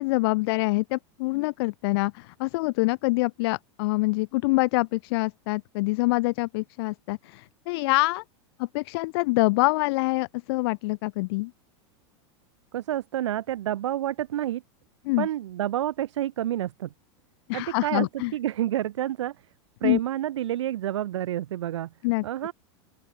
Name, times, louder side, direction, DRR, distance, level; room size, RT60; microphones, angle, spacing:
voice 1, 0.0-8.2 8.6-11.5 15.0-15.3 17.5-18.3 19.8-20.0 22.0-22.2, left 24 dB, 60° left, 3.2 m, -25 dB
voice 2, 12.7-14.6 15.2-16.9 17.5-18.1 18.3-19.3 19.8-21.9 22.2-22.5, right 12 dB, 90° right, 7.6 m, -29 dB
open air
supercardioid pair, 140°, 15 cm